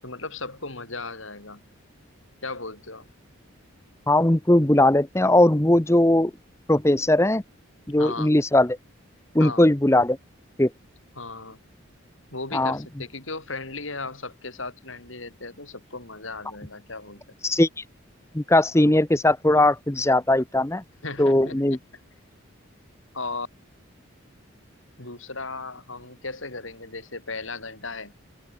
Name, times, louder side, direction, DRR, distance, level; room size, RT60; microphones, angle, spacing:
voice 1, 0.0-1.6 2.4-3.1 8.0-8.3 9.4-9.7 11.2-11.6 12.3-17.4 21.0-21.8 23.1-23.5 25.0-28.1, left 3 dB, 70° left, 7.4 m, -36 dB
voice 2, 4.1-6.3 6.7-7.4 7.9-8.8 9.3-10.2 10.6-10.7 12.5-12.8 17.4-17.7 18.3-20.8 21.2-21.8, left 1 dB, 15° left, 0.8 m, -19 dB
open air
head